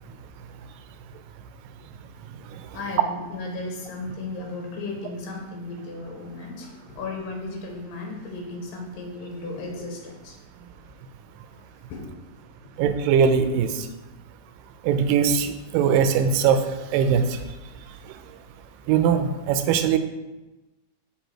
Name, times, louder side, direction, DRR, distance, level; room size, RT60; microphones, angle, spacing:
voice 1, 2.7-10.4 11.2-12.1, left 3 dB, 80° left, 1 dB, 2.7 m, -35 dB
voice 2, 12.8-13.7 14.8-16.6 16.9-17.4 18.9-20.0, right 7 dB, 85° right, 9 dB, 2.2 m, -20 dB
5.5 x 5.1 x 4.5 m, 1.1 s
omnidirectional pair, 3.9 m